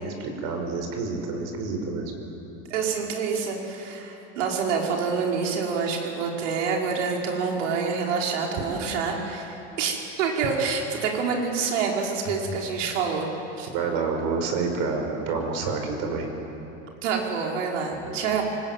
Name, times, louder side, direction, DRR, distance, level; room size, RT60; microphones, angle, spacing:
voice 1, 0.0-2.1 12.4-12.6 13.7-16.3 17.9-18.2, right 4 dB, 55° right, 4 dB, 5.2 m, -29 dB
voice 2, 2.7-13.3 13.6-13.7 17.0-18.4, right 5 dB, 90° right, 0 dB, 5.2 m, -27 dB
24.0 x 21.0 x 9.3 m, 3.0 s
supercardioid pair, 155°, 36 cm